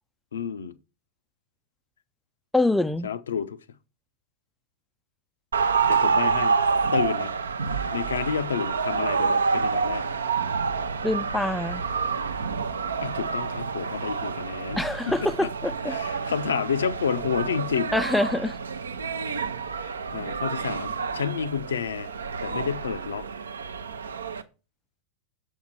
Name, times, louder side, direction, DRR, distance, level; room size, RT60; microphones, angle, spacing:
voice 1, 0.3-0.8 3.0-3.6 5.8-6.6 6.9-7.3 7.9-10.1 13.0-14.8 15.1-15.3 15.9-18.0 19.8-22.1 22.4-23.3, left 7 dB, 65° left, 0.5 m, -30 dB
voice 2, 2.5-3.1 11.0-11.8 14.8-16.0 17.9-18.6, left 2 dB, 5° left, 0.3 m, -25 dB
sound 1, 5.5-24.4, right 5 dB, 70° right, 0.6 m, -28 dB
7.1 x 4.6 x 6.1 m
figure-of-eight pair, 90°, 0 cm